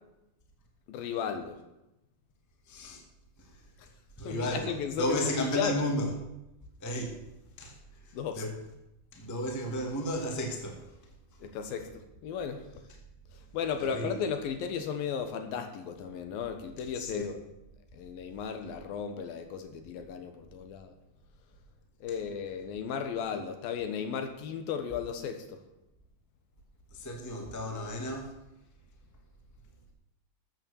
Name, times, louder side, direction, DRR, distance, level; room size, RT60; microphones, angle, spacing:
voice 1, 0.9-1.6 4.3-5.7 8.1-8.4 11.4-11.9 12.2-12.6 13.5-17.4 17.9-20.9 22.0-25.6, left 7 dB, 70° left, 6 dB, 2.9 m, -35 dB
voice 2, 2.7-3.0 3.4-3.6 4.2-6.1 6.8-7.2 7.6-8.6 9.1-10.8 13.8-14.2 16.9-17.3 26.9-28.3, equal, 10° left, 1 dB, 1.2 m, -34 dB
13.5 x 8.6 x 7.0 m, 0.90 s
omnidirectional pair, 4.5 m